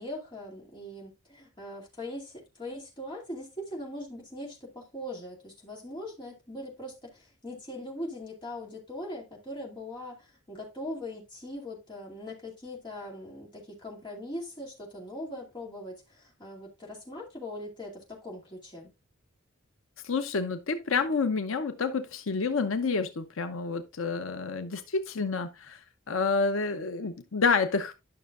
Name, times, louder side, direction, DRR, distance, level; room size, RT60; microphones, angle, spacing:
voice 1, 0.0-18.9, left 1 dB, 20° left, 2.5 m, -41 dB
voice 2, 20.0-25.8 26.1-27.9, left 4 dB, 75° left, 0.7 m, -29 dB
11.5 x 6.1 x 2.4 m
head